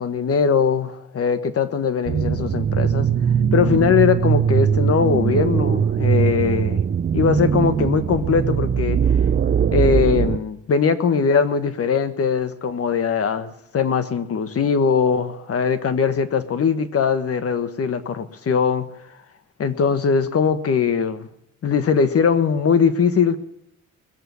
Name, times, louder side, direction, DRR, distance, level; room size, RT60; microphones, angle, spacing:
voice 1, 0.0-3.1 3.5-6.8 7.1-9.0 9.7-18.9 19.6-21.3 21.6-23.4, left 6 dB, 50° left, 10 dB, 1.5 m, -20 dB
sound 1, 2.1-10.4, right 8 dB, 35° right, 0.6 m, -20 dB
21.5 x 7.9 x 7.0 m, 0.77 s
cardioid pair, 90°, 30 cm